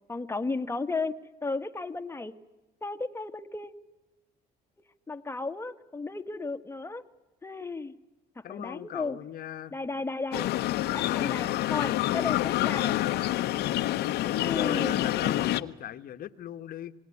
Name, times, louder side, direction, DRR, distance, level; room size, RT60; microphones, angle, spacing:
voice 1, 0.1-1.1 1.4-2.3 2.8-3.7 5.1-7.0 7.4-7.9 8.3-9.2 9.7-10.5 10.9-13.0 14.4-15.4, left 3 dB, 15° left, 9 dB, 1.5 m, -34 dB
voice 2, 8.4-9.7 10.9-11.7 14.2-16.9, left 11 dB, 60° left, 11 dB, 1.3 m, -39 dB
sound 1, 10.3-15.6, left 15 dB, 80° left, 1.0 m, -27 dB
27.0 x 19.5 x 9.7 m, 1.1 s
cardioid pair, 110°, 17 cm